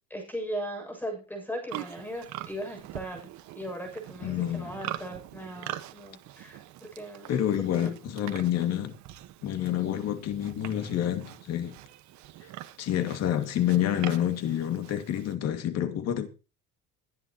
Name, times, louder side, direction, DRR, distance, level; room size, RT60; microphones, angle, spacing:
voice 1, 0.1-7.3 7.8-7.9, equal, 5° left, 7.5 m, -38 dB
Livestock farm animals working animals, 1.7-15.4, right 14 dB, 65° right, 1.6 m, -43 dB
voice 2, 4.2-4.8 7.3-8.9 9.4-11.8 12.8-16.3, left 11 dB, 55° left, 2.4 m, -28 dB
22.0 x 10.0 x 3.1 m
cardioid pair, 155°, 31 cm